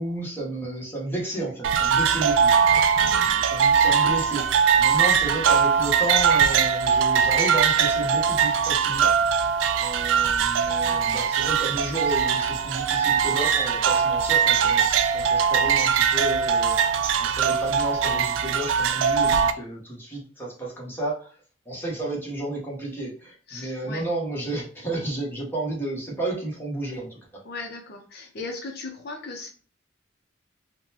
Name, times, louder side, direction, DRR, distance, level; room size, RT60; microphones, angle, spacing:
voice 1, 0.0-4.5 4.8-9.5 9.8-21.3 21.7-27.4, right 2 dB, 10° left, -4 dB, 1.0 m, -32 dB
sound 1, 1.6-19.5, right 7 dB, 75° right, 0.3 m, -21 dB
voice 2, 23.5-24.0 27.4-29.5, left 3 dB, 55° left, 3 dB, 0.6 m, -37 dB
3.7 x 2.2 x 2.8 m, 0.40 s
head